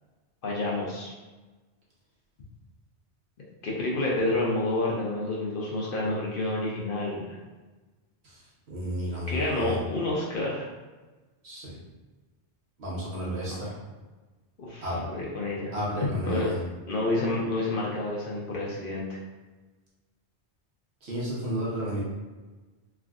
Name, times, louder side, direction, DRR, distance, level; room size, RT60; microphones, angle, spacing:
voice 1, 0.4-1.1 3.6-7.4 9.3-10.7 13.6-13.7 14.6-15.7 16.2-16.5 16.9-19.2, left 2 dB, 60° left, -4 dB, 0.7 m, -29 dB
voice 2, 8.7-9.8 11.4-11.7 12.8-13.7 14.8-15.1 15.7-16.5 21.0-22.0, equal, 70° right, -6 dB, 1.2 m, -32 dB
3.4 x 2.4 x 2.3 m, 1.2 s
omnidirectional pair, 1.2 m